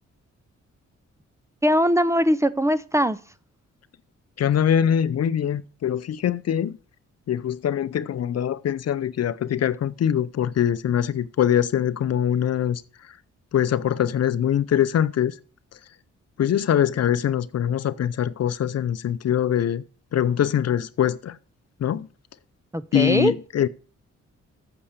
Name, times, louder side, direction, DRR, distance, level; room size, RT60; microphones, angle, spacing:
voice 1, 1.6-3.2 22.7-23.3, equal, 10° right, 0.5 m, -21 dB
voice 2, 4.4-6.8 7.3-12.8 13.5-15.3 16.4-19.8 20.1-21.4 21.8-22.1 22.9-23.7, left 9 dB, 60° left, 0.6 m, -23 dB
8.6 x 6.9 x 6.6 m
cardioid pair, 85°, 29 cm